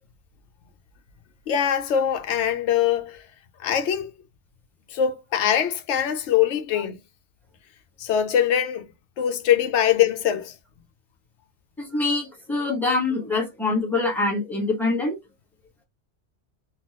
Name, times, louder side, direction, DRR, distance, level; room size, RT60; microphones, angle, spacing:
voice 1, 1.5-3.2 3.6-4.1 4.9-7.0 8.0-8.9 9.2-10.5, left 9 dB, 85° left, 0.9 m, -22 dB
voice 2, 11.8-15.2, left 3 dB, ahead, 1.2 m, -24 dB
3.6 x 2.3 x 2.9 m
omnidirectional pair, 1.1 m